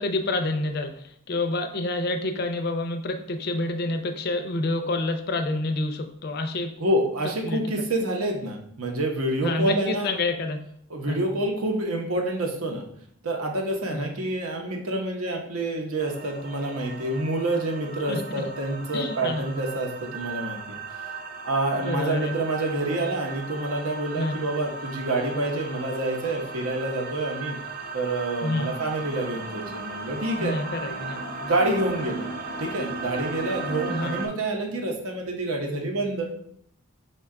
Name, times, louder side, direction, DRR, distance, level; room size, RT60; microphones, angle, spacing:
voice 1, 0.0-6.7 7.4-7.6 9.4-10.6 11.1-11.2 13.9-14.1 18.1-18.4 18.9-19.4 21.7-22.3 24.1-24.3 28.4-28.7 30.4-31.2 33.9-34.2, left 2 dB, 45° left, 7 dB, 0.4 m, -28 dB
voice 2, 6.8-10.1 10.9-12.8 13.2-20.8 21.4-27.6 27.9-30.5 31.4-32.3 32.6-36.3, right 2 dB, 80° right, 2 dB, 0.7 m, -27 dB
sound 1, 16.0-34.3, right 3 dB, 40° right, 0.4 m, -36 dB
5.4 x 2.2 x 3.6 m, 0.68 s
head